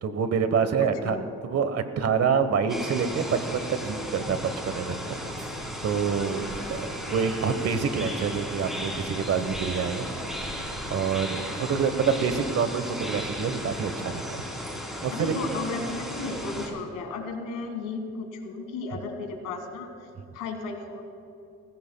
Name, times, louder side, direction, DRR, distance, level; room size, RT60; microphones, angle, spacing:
voice 1, 0.0-5.2 5.8-10.1 10.8-14.4 15.0-15.3, right 6 dB, 55° right, 11 dB, 1.1 m, -27 dB
voice 2, 0.8-1.3 15.1-19.9 20.3-21.0, left 3 dB, 90° left, 5 dB, 1.7 m, -34 dB
sound 1, 2.7-16.7, equal, ahead, 3.1 m, -35 dB
sound 2, 4.9-10.8, right 3 dB, 70° right, 2.3 m, -47 dB
19.5 x 16.5 x 2.2 m, 2.6 s
cardioid pair, 90°, 30 cm